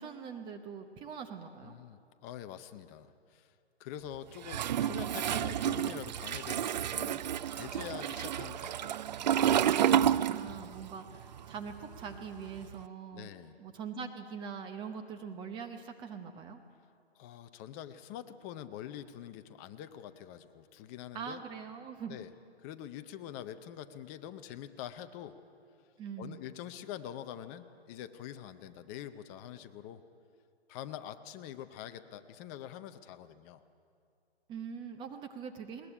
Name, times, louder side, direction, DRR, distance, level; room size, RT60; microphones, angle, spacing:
voice 1, 0.0-1.8 9.8-13.3 13.6-16.6 21.1-22.2 26.0-26.4 34.5-35.9, right 6 dB, 15° right, 6 dB, 0.8 m, -43 dB
voice 2, 1.6-3.5 3.8-9.0 13.1-13.6 17.2-21.4 22.1-22.3 22.6-25.4 26.2-30.0 30.7-33.6, left 10 dB, 15° left, 10 dB, 0.5 m, -45 dB
Toilet flush, 4.4-10.9 11.1-12.7, right 10 dB, 40° right, 0.5 m, -30 dB
21.0 x 19.5 x 9.9 m, 2.4 s
hypercardioid pair, 145°, 33 cm